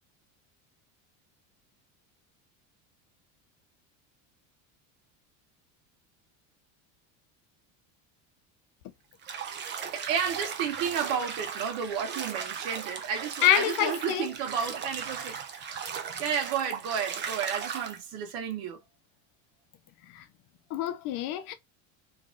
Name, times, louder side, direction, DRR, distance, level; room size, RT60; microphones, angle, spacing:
Bathtub (filling or washing), 9.2-18.0, right 7 dB, 30° right, 0.6 m, -37 dB
voice 1, 9.9-15.4 16.2-18.8, right 7 dB, 70° right, 1.5 m, -32 dB
voice 2, 13.4-14.3 20.1-20.2 20.7-21.5, left 12 dB, 60° left, 0.8 m, -26 dB
3.2 x 2.6 x 3.7 m
cardioid pair, 140°, 39 cm